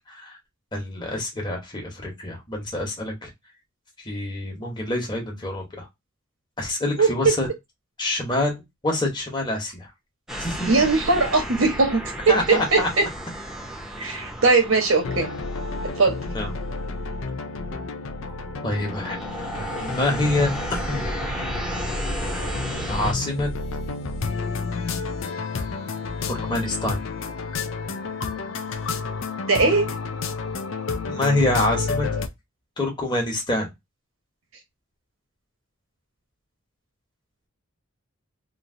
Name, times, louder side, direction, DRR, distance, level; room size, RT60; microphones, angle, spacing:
voice 1, 0.7-3.3 4.0-5.8 6.6-7.5 8.0-9.9 10.4-10.8 12.3-12.9 16.3-16.5 18.6-19.2 19.8-21.0 22.9-23.5 26.3-27.0 31.1-32.1 32.8-33.7, left 2 dB, 20° left, 1.1 m, -26 dB
voice 2, 7.0-7.3 10.7-13.1 14.0-15.3 16.0-16.2 29.5-29.9, right 3 dB, 85° right, 1.1 m, -20 dB
sound 1, 10.3-17.2 17.7-18.0 18.3-23.1, equal, 5° right, 0.7 m, -34 dB
sound 2, 15.0-32.3, left 4 dB, 70° left, 0.5 m, -30 dB
3.1 x 2.6 x 2.5 m
head